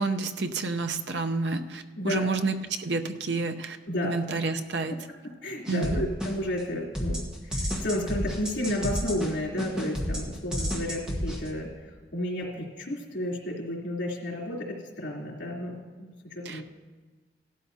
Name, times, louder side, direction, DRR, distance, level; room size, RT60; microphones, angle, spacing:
voice 1, 0.0-3.8 4.0-4.9 5.7-6.0 16.5-16.6, right 3 dB, 75° right, 6 dB, 0.7 m, -29 dB
voice 2, 2.0-2.3 3.9-4.1 5.2-11.7 12.1-16.6, left 1 dB, 90° left, -3 dB, 3.3 m, -32 dB
sound 1, 5.7-6.6 7.0-11.5, equal, 5° right, 1.4 m, -31 dB
17.0 x 12.5 x 2.8 m, 1.3 s
head